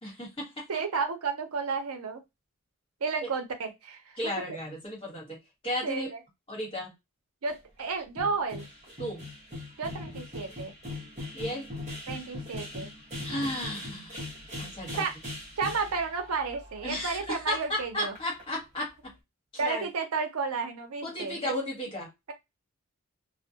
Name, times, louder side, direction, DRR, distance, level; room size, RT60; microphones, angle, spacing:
voice 1, 0.0-0.6 4.2-6.1 6.5-6.9 9.0-9.2 11.3-11.7 13.2-14.2 14.6-15.0 16.8-19.1 19.6-19.8 21.0-22.1, left 1 dB, 25° left, -3 dB, 1.2 m, -34 dB
voice 2, 0.7-2.2 3.0-4.6 5.8-6.2 7.4-8.7 9.8-10.7 12.1-12.9 15.0-15.2 15.6-18.1 19.6-21.5, right 4 dB, 85° right, 5 dB, 0.6 m, -32 dB
sound 1, 7.5-7.6 7.8-7.9 8.2-17.8 18.1-18.5, left 2 dB, 30° right, 0.8 m, -41 dB
2.2 x 2.0 x 2.7 m, 0.21 s
head